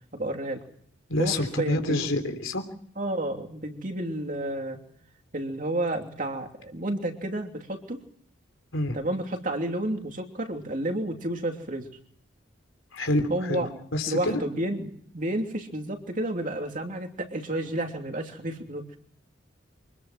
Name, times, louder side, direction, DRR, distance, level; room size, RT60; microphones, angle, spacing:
voice 1, 0.1-0.6 1.2-2.0 3.0-4.8 5.3-8.0 8.9-11.9 13.3-13.7 14.1-19.0, right 1 dB, 40° right, 3 dB, 3.0 m, -31 dB
voice 2, 1.1-2.6 8.7-9.0 12.9-13.6 13.9-14.4, left 1 dB, 85° left, 6 dB, 3.5 m, -27 dB
25.5 x 20.0 x 6.0 m, 0.62 s
head